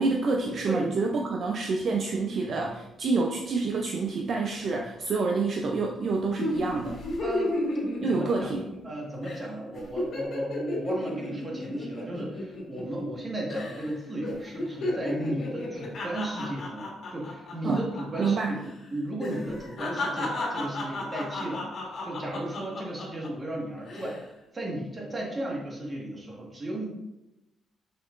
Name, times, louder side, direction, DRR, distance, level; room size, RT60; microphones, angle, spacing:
voice 1, 0.0-7.0 8.0-8.7 17.6-17.9 18.2-18.5, right 4 dB, 50° right, 1 dB, 0.6 m, -27 dB
sound 1, 6.4-8.9 9.2-9.4 9.7-13.2 13.5-13.9 14.2-18.3 18.5-18.7 19.2-23.3 23.8-24.2, left 1 dB, 55° left, 1.8 m, -33 dB
voice 2, 7.2-7.6 8.1-8.5 8.8-21.6 22.0-24.2 24.5-26.9, right 1 dB, 25° right, -2 dB, 1.6 m, -34 dB
6.5 x 5.9 x 2.5 m, 0.92 s
cardioid pair, 135°, 0 cm